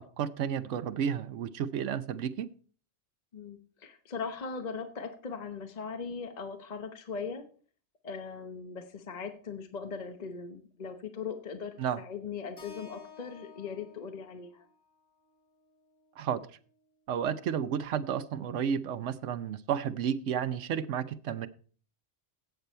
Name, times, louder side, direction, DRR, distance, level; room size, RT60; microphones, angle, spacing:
voice 1, 0.0-2.5 11.8-12.0 16.2-16.4 17.1-21.5, right 8 dB, 90° right, 13 dB, 1.0 m, -32 dB
voice 2, 3.3-7.4 8.0-14.7, left 5 dB, 40° left, 7 dB, 1.0 m, -39 dB
Keyboard (musical), 12.6-16.8, left 5 dB, 85° left, 3.3 m, -54 dB
16.5 x 6.8 x 4.3 m, 0.42 s
omnidirectional pair, 1.2 m